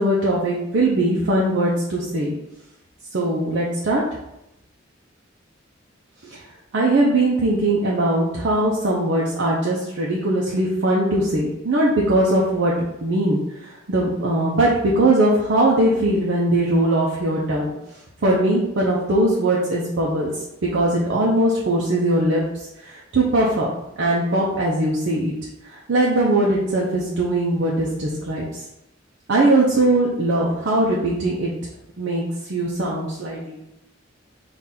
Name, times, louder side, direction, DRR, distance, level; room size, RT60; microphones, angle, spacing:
voice 1, 0.0-2.3 3.1-4.0 6.3-6.4 6.7-12.7 13.0-17.7 18.2-20.3 20.7-22.4 22.8-23.7 24.0-25.3 25.7-28.6 29.3-31.5 32.0-32.2 32.5-33.6, right 1 dB, 65° right, -4 dB, 0.6 m, -20 dB
3.8 x 2.5 x 4.2 m, 0.86 s
head